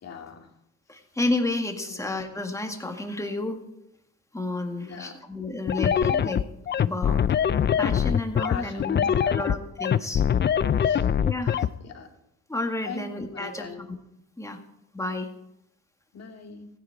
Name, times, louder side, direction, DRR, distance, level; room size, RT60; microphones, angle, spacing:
voice 1, 0.0-0.5 1.9-2.0 4.8-5.2 8.5-9.4 10.8-11.1 11.4-11.5 11.8-12.1 12.8-13.9 16.1-16.7, left 5 dB, 55° left, 2 dB, 2.4 m, -41 dB
voice 2, 0.9-3.6 4.3-6.4 6.8-7.2 7.8-10.2 11.2-11.7 12.5-13.7 14.4-14.6 14.9-15.3, left 2 dB, 10° left, 4 dB, 1.9 m, -31 dB
sound 1, 5.7-11.7, left 8 dB, 35° left, 0.5 m, -23 dB
15.5 x 10.5 x 4.7 m, 0.83 s
cardioid pair, 90°, 30 cm